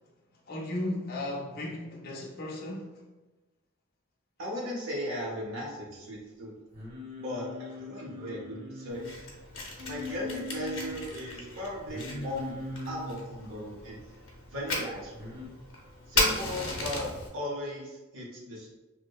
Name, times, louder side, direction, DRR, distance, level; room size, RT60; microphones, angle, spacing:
voice 1, 0.5-3.0, left 1 dB, 50° left, 0.4 m, -35 dB
voice 2, 4.4-6.5 7.2-9.0 9.8-12.6 12.9-14.0 14.5-15.4 16.1-18.7, left 1 dB, 75° right, 0.7 m, -37 dB
Singing, 6.7-9.2 9.8-11.0 11.9-13.2 15.1-15.5, left 2 dB, 30° right, 0.7 m, -40 dB
Fire, 8.9-17.3, left 2 dB, 85° left, 0.7 m, -35 dB
2.7 x 2.0 x 2.2 m
head